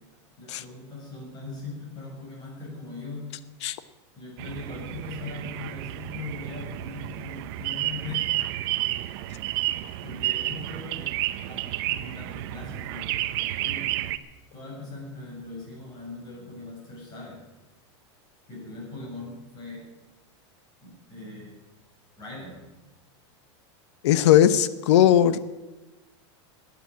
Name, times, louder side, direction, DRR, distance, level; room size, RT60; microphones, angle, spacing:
voice 1, 0.4-3.3 4.2-8.5 9.4-13.1 13.6-13.9 14.5-17.4 18.5-19.8 20.8-21.6 22.2-22.6, left 3 dB, 25° left, -2 dB, 7.7 m, -40 dB
sound 1, 4.4-14.2, right 15 dB, 55° right, 0.9 m, -31 dB
voice 2, 24.0-25.4, left 11 dB, 70° left, 14 dB, 1.0 m, -18 dB
17.0 x 10.0 x 7.6 m, 1.1 s
supercardioid pair, 155°, 15 cm